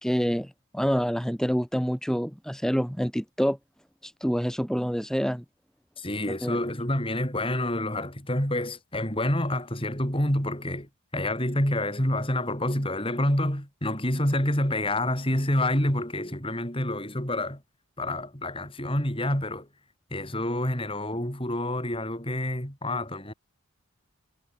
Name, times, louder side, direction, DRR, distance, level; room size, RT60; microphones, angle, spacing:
voice 1, 0.0-3.6 4.0-5.4 6.4-6.6, equal, ahead, 4.2 m, -27 dB
voice 2, 6.0-17.6 18.0-19.7 20.1-23.3, left 1 dB, 25° left, 7.5 m, -28 dB
head